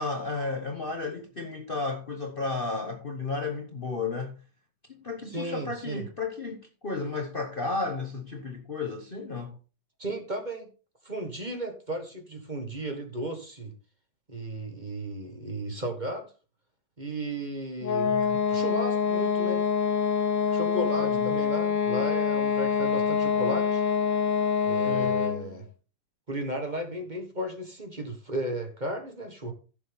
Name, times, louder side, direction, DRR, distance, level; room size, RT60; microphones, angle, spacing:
voice 1, 0.0-4.4 4.9-9.5 18.0-18.4 21.0-21.4 24.9-25.2, left 3 dB, 35° left, 1.1 m, -33 dB
voice 2, 5.3-6.0 10.0-10.7 11.0-13.7 14.3-16.3 17.0-18.1 18.5-19.6 20.5-23.8 24.6-25.7 26.3-29.5, right 1 dB, 25° right, 1.7 m, -34 dB
sound 1, 17.8-25.5, left 6 dB, 90° left, 1.9 m, -25 dB
15.0 x 6.8 x 3.6 m
omnidirectional pair, 1.9 m